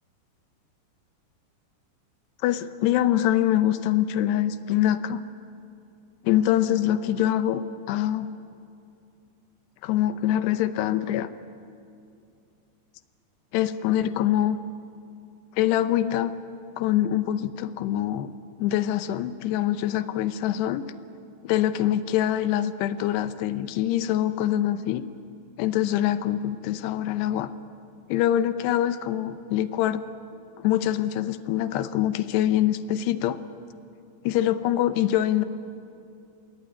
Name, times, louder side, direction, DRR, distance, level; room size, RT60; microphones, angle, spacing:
voice 1, 2.4-5.2 6.2-8.3 9.8-11.3 13.5-14.6 15.6-16.3 16.8-18.3 18.6-20.9 21.4-25.1 25.6-27.5 28.1-30.0 30.6-33.4 34.2-35.4, left 12 dB, 80° left, 12 dB, 2.8 m, -24 dB
27.5 x 19.5 x 9.7 m, 2.5 s
omnidirectional pair, 5.1 m